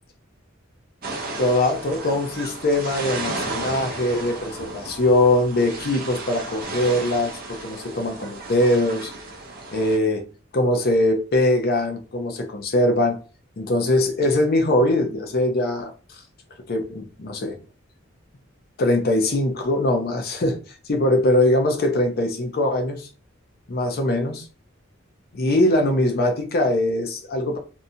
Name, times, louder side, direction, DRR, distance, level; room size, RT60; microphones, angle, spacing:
sound 1, 1.0-10.0, right 2 dB, 45° right, 0.6 m, -34 dB
voice 1, 1.4-9.1 9.7-10.3 10.5-13.2 13.6-15.9 16.7-17.6 18.8-20.6 20.8-23.1 23.7-24.5 25.3-27.6, left 1 dB, 50° left, 0.6 m, -21 dB
2.7 x 2.2 x 2.7 m
head